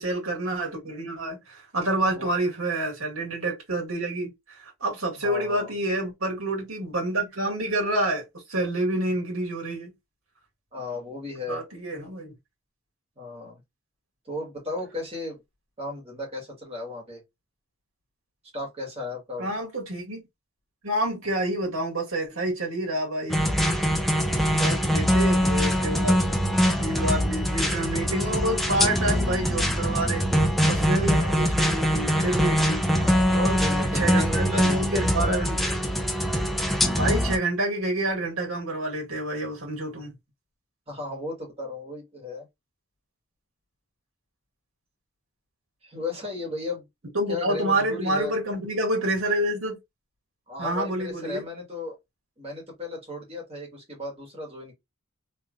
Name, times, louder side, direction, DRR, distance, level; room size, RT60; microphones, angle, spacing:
voice 1, 0.0-9.9 11.5-12.3 19.4-20.2 20.8-23.7 24.3-26.4 26.8-32.8 33.3-33.6 33.9-35.6 36.8-40.1 47.1-49.8 50.6-51.5, right 1 dB, 80° right, 1.9 m, -28 dB
voice 2, 5.2-5.7 10.7-11.6 13.2-13.6 14.3-15.4 15.8-17.2 18.5-19.5 24.6-24.7 31.1-31.5 32.9-35.4 40.9-42.5 45.8-48.3 50.5-52.0 52.4-54.7, left 2 dB, 30° right, 1.8 m, -35 dB
sound 1, 23.3-37.4, equal, ahead, 0.6 m, -23 dB
3.3 x 3.1 x 2.4 m
head